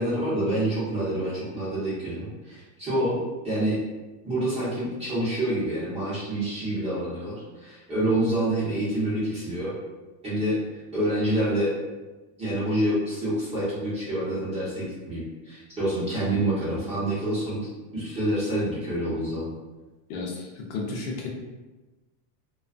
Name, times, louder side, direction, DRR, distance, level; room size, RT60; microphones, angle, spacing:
voice 1, 0.0-3.8 4.2-9.7 10.2-10.6 10.9-11.7 12.4-17.7 17.9-19.5, right 1 dB, 15° right, -11 dB, 0.9 m, -27 dB
voice 2, 20.1-21.3, left 3 dB, 70° left, -1 dB, 0.7 m, -33 dB
2.3 x 2.3 x 2.4 m, 1.2 s
supercardioid pair, 160°, 47 cm